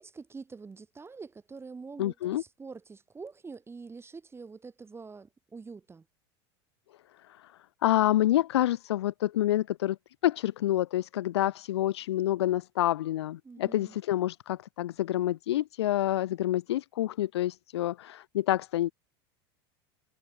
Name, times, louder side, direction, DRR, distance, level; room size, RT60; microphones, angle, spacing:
voice 1, 0.0-6.0 13.4-13.9, right 4 dB, 20° right, 3.5 m, -45 dB
voice 2, 2.0-2.4 7.4-7.5 7.8-10.0 10.2-18.9, left 14 dB, 85° left, 0.7 m, -28 dB
hypercardioid pair, 95°, 14 cm